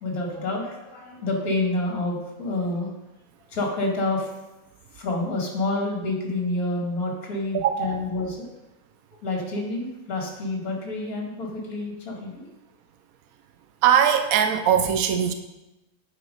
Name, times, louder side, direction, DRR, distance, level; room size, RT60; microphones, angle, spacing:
voice 1, 0.0-2.9 3.5-4.3 4.9-8.5 9.2-12.4, left 2 dB, 50° left, -1 dB, 2.4 m, -28 dB
voice 2, 7.5-8.0 13.8-15.3, right 9 dB, 80° right, 9 dB, 0.8 m, -20 dB
9.1 x 5.9 x 5.3 m, 1.0 s
omnidirectional pair, 2.1 m